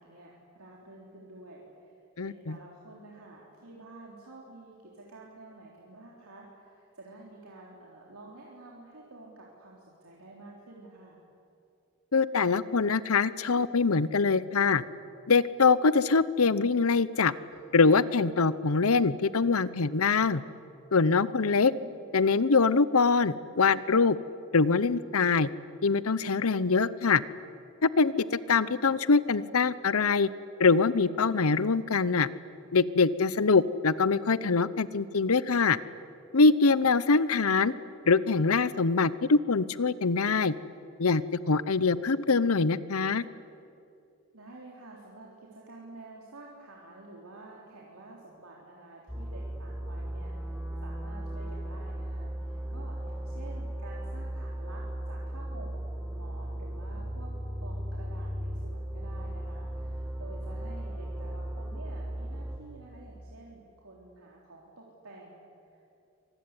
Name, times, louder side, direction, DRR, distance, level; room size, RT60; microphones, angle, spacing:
voice 1, 0.0-11.2 17.5-17.6 21.5-22.2 44.3-57.3 57.6-66.0, right 2 dB, 90° right, -3 dB, 3.7 m, -50 dB
voice 2, 2.2-2.6 12.1-14.8 15.3-17.3 17.7-20.4 20.9-21.7 22.1-24.2 24.5-25.5 25.8-27.2 27.8-28.1 28.5-30.3 30.6-32.3 32.7-35.8 36.3-37.7 38.1-40.5 41.0-41.2 41.5-43.2, left 4 dB, 85° left, 17 dB, 0.9 m, -24 dB
sound 1, 49.1-62.6, right 1 dB, 5° right, 2.5 m, -36 dB
25.5 x 20.5 x 9.9 m, 2.6 s
head